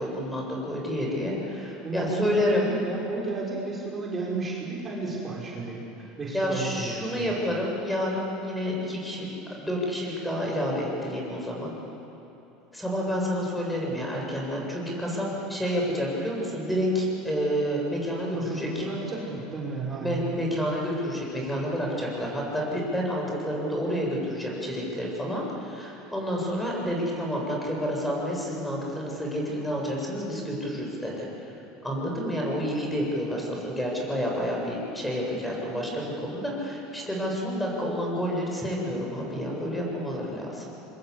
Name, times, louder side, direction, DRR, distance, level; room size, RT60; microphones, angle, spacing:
voice 1, 0.0-2.7 6.3-11.7 12.7-18.8 20.0-31.3 31.8-40.7, equal, 5° left, -2 dB, 7.8 m, -29 dB
voice 2, 1.8-7.3 18.3-20.3, right 3 dB, 25° right, -4 dB, 6.3 m, -32 dB
25.5 x 23.5 x 8.4 m, 3.0 s
hypercardioid pair, 85°, 0 cm